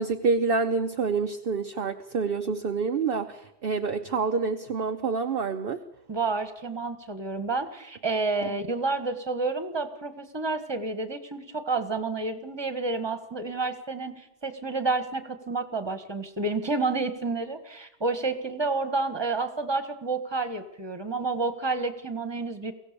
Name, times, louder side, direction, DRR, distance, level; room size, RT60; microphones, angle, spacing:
voice 1, 0.0-5.8 8.4-8.5, right 4 dB, 45° right, 6 dB, 0.9 m, -27 dB
voice 2, 6.1-22.7, right 3 dB, 15° right, 9 dB, 1.6 m, -30 dB
23.0 x 17.0 x 6.9 m, 0.81 s
omnidirectional pair, 1.6 m